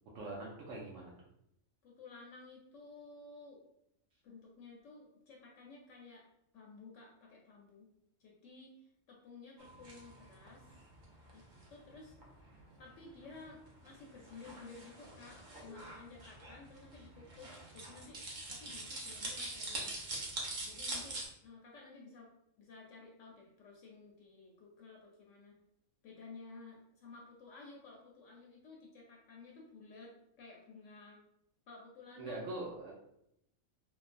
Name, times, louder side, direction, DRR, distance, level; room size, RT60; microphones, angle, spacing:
voice 1, 0.1-1.1 32.2-32.9, right 2 dB, 70° right, -4 dB, 0.9 m, -42 dB
voice 2, 1.8-3.6 4.2-6.3 6.5-7.9 8.2-8.8 9.1-10.6 11.3-11.4 11.7-12.1 12.8-18.2 18.5-20.0 20.7-22.3 22.6-25.6 26.0-31.2 31.7-32.4, left 3 dB, 70° left, -2 dB, 0.9 m, -54 dB
sound 1, 9.6-21.3, right 2 dB, 50° right, 0.6 m, -45 dB
3.1 x 2.1 x 2.4 m, 0.77 s
omnidirectional pair, 1.4 m